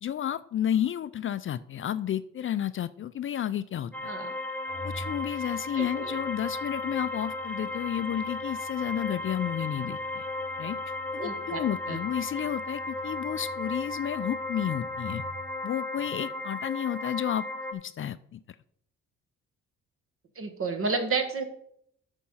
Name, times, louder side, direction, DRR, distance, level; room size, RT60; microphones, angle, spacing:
voice 1, 0.0-4.1 4.8-10.3 10.6-10.8 11.1-15.2 15.6-17.4 17.7-18.4, left 10 dB, 45° left, 15 dB, 0.4 m, -31 dB
sound 1, 3.9-17.7, left 2 dB, 5° left, 0.9 m, -35 dB
Organ, 4.7-15.7, left 1 dB, 25° left, 1.3 m, -49 dB
voice 2, 5.8-6.2 11.2-11.6 11.9-12.0 20.4-21.4, right 4 dB, 45° right, 6 dB, 1.7 m, -31 dB
8.5 x 5.3 x 5.6 m, 0.68 s
cardioid pair, 90°, 30 cm